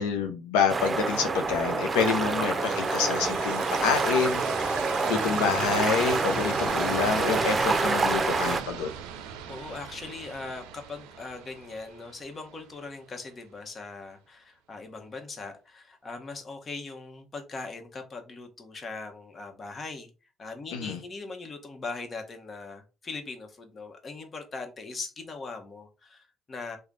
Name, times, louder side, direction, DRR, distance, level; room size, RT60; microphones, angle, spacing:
voice 1, 0.0-8.9 20.7-21.0, left 6 dB, 90° left, 0.5 m, -28 dB
sound 1, 0.7-8.6, right 3 dB, 30° right, 0.6 m, -27 dB
sound 2, 2.0-13.0, right 8 dB, 85° right, 0.5 m, -40 dB
voice 2, 5.2-5.5 6.2-6.8 9.5-20.1 20.4-26.8, left 3 dB, 40° left, 1.0 m, -40 dB
3.2 x 2.2 x 3.8 m
supercardioid pair, 65°, 0 cm